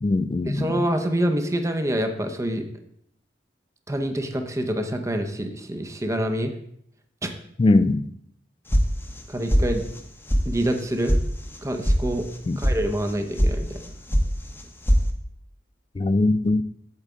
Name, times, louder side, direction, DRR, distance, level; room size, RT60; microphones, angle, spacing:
voice 1, 0.0-0.8 7.6-8.1 12.5-12.6 16.0-16.6, left 2 dB, 30° left, 13 dB, 0.3 m, -21 dB
voice 2, 0.5-2.7 3.9-6.5 7.2-7.4 9.3-9.9 10.5-11.2 11.6-12.3 12.6-13.8, right 1 dB, 15° right, 6 dB, 0.7 m, -26 dB
sound 1, 8.7-9.2 9.5-10.0 10.3-10.4 10.8-11.2 11.5-12.0 12.3-12.7 13.1-13.5 13.8-14.3 14.5-15.0, equal, 15° left, 0.9 m, -20 dB
8.4 x 8.0 x 3.7 m, 0.69 s
head